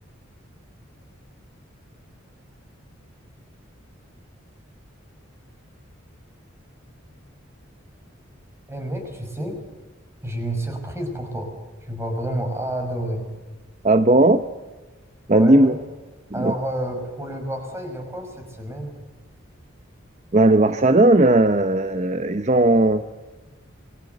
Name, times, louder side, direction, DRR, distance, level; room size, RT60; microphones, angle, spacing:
voice 1, 8.7-9.6 10.2-11.5 11.8-13.2 15.3-15.8 16.3-18.9, right 1 dB, 15° right, 5 dB, 5.8 m, -29 dB
voice 2, 13.8-14.4 15.3-15.8 16.4-16.5 20.3-23.0, right 2 dB, 35° right, 11 dB, 0.8 m, -16 dB
28.5 x 21.5 x 8.1 m, 1.2 s
head